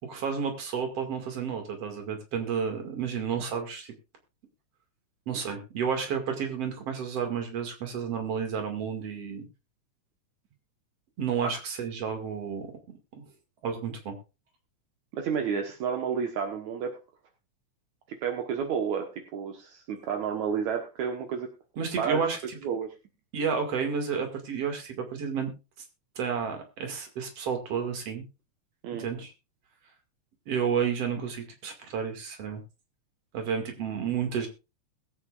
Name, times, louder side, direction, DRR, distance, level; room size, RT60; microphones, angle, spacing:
voice 1, 0.1-3.9 5.3-9.5 11.2-12.7 13.2-13.3 13.6-14.1 21.8-22.6 23.3-25.5 26.2-28.2 28.9-29.3 30.5-32.6 33.3-34.5, right 6 dB, 55° right, 4 dB, 3.1 m, -31 dB
voice 2, 15.1-16.9 18.2-21.5 22.0-22.2 22.6-22.9 28.8-29.1, right 7 dB, 75° right, 4 dB, 2.6 m, -30 dB
21.0 x 8.7 x 2.5 m, 0.28 s
omnidirectional pair, 3.4 m